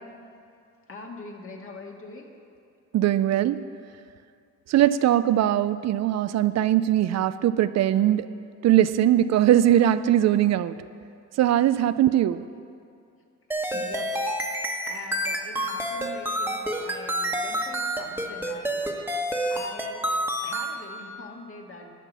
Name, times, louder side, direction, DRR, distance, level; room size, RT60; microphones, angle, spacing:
voice 1, 0.9-2.3 13.5-19.0 19.5-21.9, left 3 dB, 45° left, 1 dB, 1.8 m, -43 dB
voice 2, 2.9-3.6 4.7-8.3 8.6-10.8 11.4-12.4, right 12 dB, 60° right, 14 dB, 0.4 m, -21 dB
sound 1, 13.5-20.8, right 1 dB, 5° right, 1.2 m, -28 dB
11.5 x 5.9 x 9.1 m, 2.4 s
cardioid pair, 90°, 30 cm